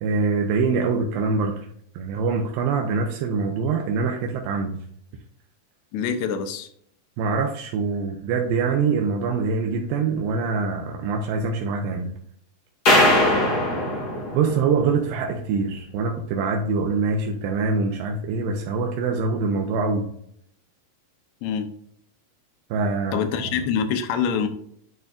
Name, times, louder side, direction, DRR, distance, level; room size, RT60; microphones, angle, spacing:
voice 1, 0.0-1.7 1.9-4.8 7.2-12.1 14.3-20.1 22.7-23.2, right 4 dB, 90° right, 2 dB, 2.5 m, -24 dB
voice 2, 5.9-6.7 21.4-21.7 23.1-24.5, left 7 dB, 75° left, 7 dB, 1.8 m, -25 dB
sound 1, 12.9-15.2, left 1 dB, 40° left, 1.4 m, -20 dB
10.5 x 3.9 x 2.4 m, 0.67 s
omnidirectional pair, 4.0 m